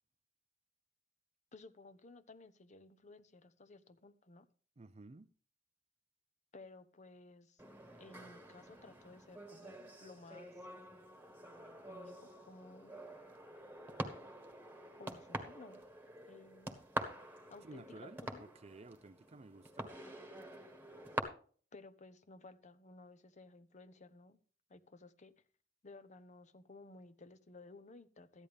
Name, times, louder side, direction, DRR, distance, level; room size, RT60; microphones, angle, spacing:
voice 1, 1.5-4.5 6.5-7.6 8.0-10.6 11.9-13.0 15.0-15.8 16.3-16.8 17.5-18.5 21.7-24.4 24.7-25.3 25.8-28.5, left 3 dB, 40° left, 0.8 m, -56 dB
voice 2, 4.8-5.3 17.6-19.9, right 2 dB, 35° right, 0.5 m, -54 dB
sound 1, 7.6-21.2, right 1 dB, 10° right, 1.5 m, -47 dB
14.0 x 11.0 x 3.4 m
head